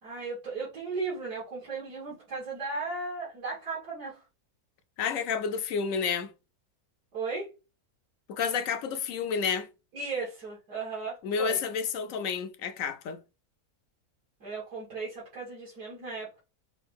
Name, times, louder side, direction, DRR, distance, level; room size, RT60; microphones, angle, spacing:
voice 1, 0.0-4.2 7.1-7.5 9.9-11.6 14.4-16.4, right 4 dB, 85° right, 2.7 m, -36 dB
voice 2, 5.0-6.3 8.3-9.7 11.2-13.2, left 6 dB, 70° left, 0.9 m, -30 dB
5.4 x 2.8 x 3.4 m
omnidirectional pair, 1.6 m